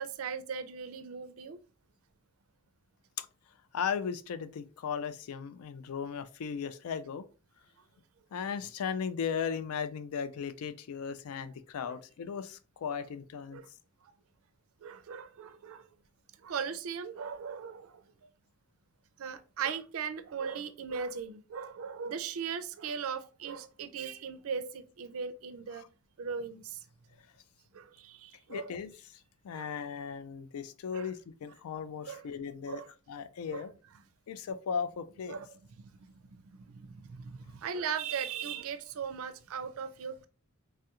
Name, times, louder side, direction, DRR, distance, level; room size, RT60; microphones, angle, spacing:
voice 1, 0.0-1.6 11.8-12.0 13.5-13.7 14.8-15.9 16.4-18.0 19.2-25.8 26.2-26.8 27.7-28.7 29.5-29.7 30.9-31.1 32.0-32.3 32.7-32.9 33.5-33.7 35.3-35.6 36.5-40.3, right 6 dB, 70° right, 0.4 m, -38 dB
voice 2, 3.7-7.2 8.3-13.6 25.8-25.9 28.5-28.9 29.4-32.8 33.1-33.7 34.3-35.4, left 6 dB, 90° left, 0.4 m, -36 dB
3.2 x 2.3 x 2.8 m
head